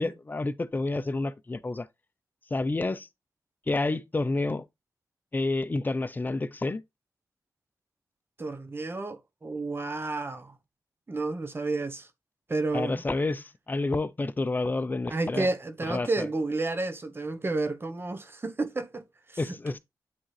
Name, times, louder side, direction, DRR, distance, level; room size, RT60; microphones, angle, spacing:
voice 1, 0.0-1.9 2.5-3.1 3.7-4.6 5.3-6.8 12.7-15.5 15.9-16.3 19.4-19.8, left 2 dB, 25° left, 0.6 m, -29 dB
voice 2, 8.4-10.5 11.1-12.1 12.5-13.0 15.1-19.4, right 3 dB, 35° right, 0.9 m, -31 dB
9.1 x 3.7 x 3.2 m
wide cardioid pair, 120°, 7 cm